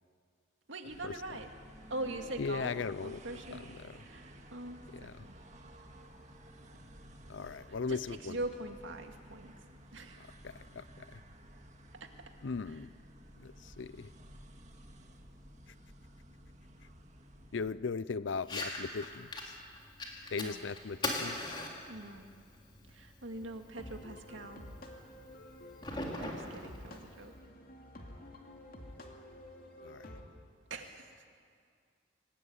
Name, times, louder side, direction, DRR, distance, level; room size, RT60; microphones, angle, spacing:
voice 1, 0.7-1.5 1.9-2.7 3.0-3.7 4.0-5.4 7.9-9.5 9.9-10.3 12.7-12.8 20.2-20.6 21.9-22.3 22.9-24.7 26.2-27.3 30.7-31.2, right 2 dB, 80° right, 4 dB, 2.3 m, -43 dB
sound 1, 0.9-17.7, right 1 dB, 35° right, 1.9 m, -54 dB
voice 2, 2.4-3.9 4.9-5.2 7.3-8.4 10.4-11.2 12.4-12.9 13.4-14.1 17.5-19.5 20.3-21.6 29.8-30.1, left 4 dB, 75° left, 17 dB, 0.5 m, -38 dB
Fire, 18.4-27.4, left 2 dB, 25° left, 3.3 m, -42 dB
sound 2, 23.3-30.2, left 1 dB, 45° left, 2.7 m, -50 dB
25.5 x 18.0 x 9.7 m, 2.1 s
head